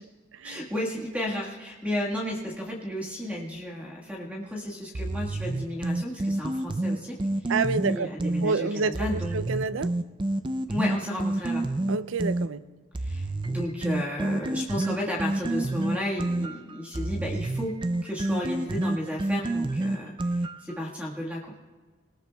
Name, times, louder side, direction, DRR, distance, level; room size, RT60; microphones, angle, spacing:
voice 1, 0.4-7.2 7.4-7.5 7.9-9.4 10.7-11.7 13.0-21.5, left 1 dB, 5° right, -3 dB, 1.5 m, -33 dB
sound 1, 4.9-8.5 8.9-12.5 12.9-20.7, right 2 dB, 25° right, 0.4 m, -29 dB
voice 2, 7.5-9.9 11.9-12.6, right 4 dB, 85° right, 15 dB, 0.5 m, -28 dB
20.5 x 19.0 x 2.3 m, 1.3 s
head